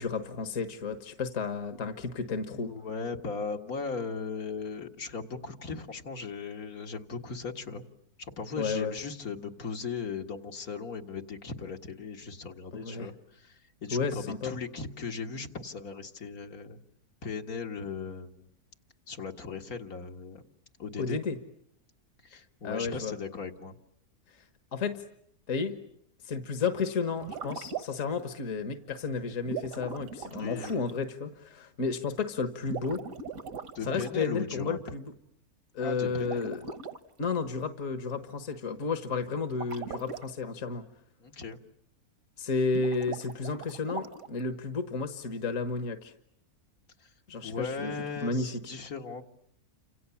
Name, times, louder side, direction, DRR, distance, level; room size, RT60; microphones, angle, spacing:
voice 1, 0.0-2.7 8.6-8.9 12.7-13.1 13.9-14.5 21.0-21.4 22.6-23.1 24.3-24.4 24.7-25.0 25.5-25.8 26.2-33.0 33.8-35.1 35.7-36.6 37.2-40.8 42.4-46.1 47.3-48.7, left 4 dB, 60° left, 9 dB, 1.8 m, -32 dB
voice 2, 2.5-7.8 8.2-16.8 17.2-18.5 19.1-20.4 20.8-21.2 22.2-23.8 30.3-30.8 33.7-34.8 35.8-36.4 41.2-41.6 47.4-49.2, left 5 dB, 75° left, 3 dB, 2.4 m, -38 dB
sound 1, 27.2-28.2 29.4-30.9 32.6-34.1 36.2-37.0 39.5-40.2 42.7-44.4, right 5 dB, 70° right, 1.8 m, -40 dB
30.0 x 27.0 x 7.1 m, 0.73 s
omnidirectional pair, 1.6 m